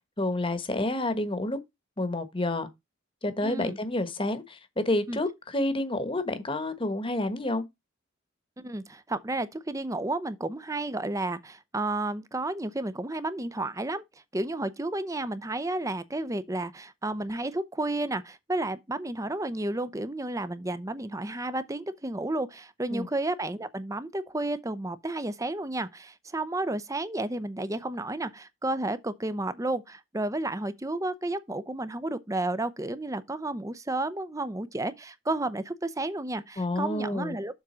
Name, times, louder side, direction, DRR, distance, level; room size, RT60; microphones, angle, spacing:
voice 1, 0.2-1.6 2.0-2.7 3.2-7.6 22.9-23.1 36.6-37.3, left 1 dB, 25° left, 1.2 m, -29 dB
voice 2, 3.4-3.8 5.1-5.2 8.6-14.0 14.3-37.6, right 2 dB, 15° right, 0.6 m, -32 dB
7.4 x 3.7 x 6.2 m
head